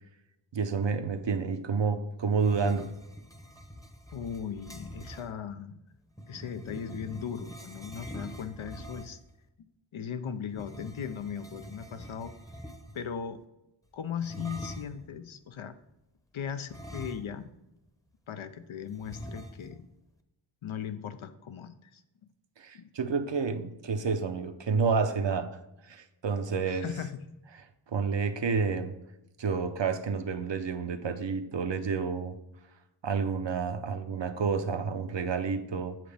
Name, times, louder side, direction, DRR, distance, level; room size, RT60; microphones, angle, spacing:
voice 1, 0.5-2.9 22.6-25.5 25.8-26.9 27.9-29.0 29.4-32.4 33.0-36.0, right 5 dB, 65° right, 8 dB, 0.8 m, -29 dB
sound 1, 2.4-5.3 6.1-9.3 10.5-13.1 14.2-15.1 16.7-17.6 17.9-18.0 19.0-19.9, equal, 5° left, 0.8 m, -44 dB
voice 2, 4.1-5.8 6.3-9.2 9.9-12.3 12.9-13.4 13.9-15.7 16.3-17.5 18.3-19.9 20.6-22.0 22.7-22.9 26.7-27.2, left 7 dB, 75° left, 11 dB, 0.7 m, -38 dB
7.6 x 7.6 x 3.4 m, 0.91 s
wide cardioid pair, 85°, 48 cm